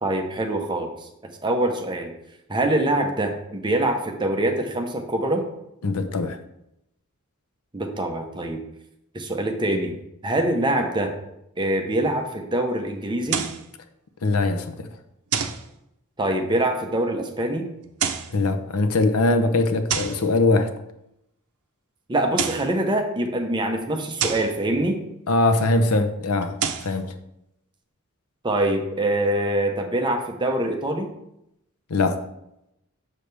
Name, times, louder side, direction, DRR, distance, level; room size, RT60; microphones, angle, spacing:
voice 1, 0.0-2.1 2.5-5.5 7.7-8.6 9.1-9.9 10.2-11.1 11.6-13.5 16.2-17.7 22.1-25.0 28.4-31.1, right 1 dB, 20° right, 0.8 m, -24 dB
voice 2, 5.8-6.4 14.2-14.9 18.3-20.7 25.3-27.2 31.9-32.2, left 2 dB, 85° left, 0.7 m, -22 dB
sound 1, 13.3-13.7 15.3-15.7 17.8-18.4 19.9-20.3 22.2-22.7 24.2-24.5 26.4-26.9, right 7 dB, 90° right, 0.6 m, -27 dB
6.6 x 6.4 x 3.3 m
head